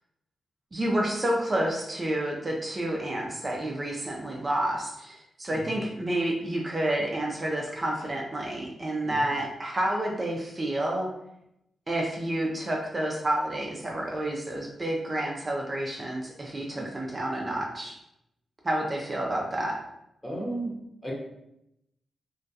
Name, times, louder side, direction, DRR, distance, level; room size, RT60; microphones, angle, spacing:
voice 1, 0.7-11.1 11.9-18.0 18.6-19.8, right 1 dB, 35° right, -1 dB, 0.4 m, -29 dB
voice 2, 20.2-20.8 21.0-21.1, right 1 dB, 15° left, -3 dB, 0.9 m, -35 dB
2.2 x 2.2 x 2.6 m, 0.82 s
supercardioid pair, 45°, 0 cm